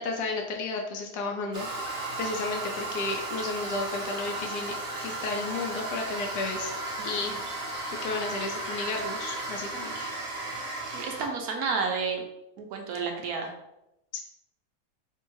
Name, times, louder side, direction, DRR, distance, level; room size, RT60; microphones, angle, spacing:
voice 1, 0.0-4.8 5.0-6.7 7.0-7.3 8.0-10.1 14.1-14.2, left 3 dB, 85° left, 2 dB, 1.2 m, -33 dB
Toilet flush, 1.5-11.3, right 2 dB, 50° right, 1.2 m, -35 dB
voice 2, 10.9-12.2 12.6-13.5, right 5 dB, 70° right, 2 dB, 1.1 m, -31 dB
3.5 x 2.7 x 4.5 m, 0.84 s
omnidirectional pair, 1.7 m